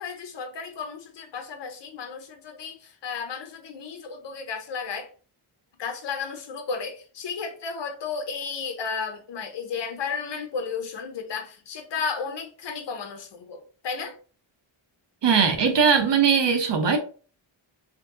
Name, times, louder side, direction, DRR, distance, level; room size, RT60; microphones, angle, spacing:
voice 1, 0.0-5.1 5.8-14.2, left 5 dB, 60° left, 0.8 m, -33 dB
voice 2, 15.2-17.0, right 6 dB, 60° right, 0.6 m, -20 dB
4.4 x 2.6 x 2.5 m
wide cardioid pair, 130°, 49 cm